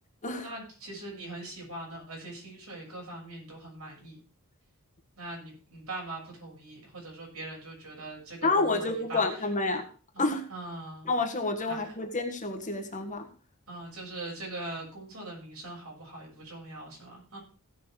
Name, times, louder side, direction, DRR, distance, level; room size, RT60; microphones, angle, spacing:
voice 1, 0.4-4.2 5.2-9.2 10.1-10.2 10.5-11.1 11.7-11.8 13.7-17.4, right 2 dB, 80° right, -2 dB, 6.9 m, -42 dB
voice 2, 8.4-9.8 10.2-10.4 11.0-13.2, left 3 dB, 35° left, 5 dB, 1.7 m, -29 dB
17.0 x 5.8 x 5.0 m, 0.39 s
head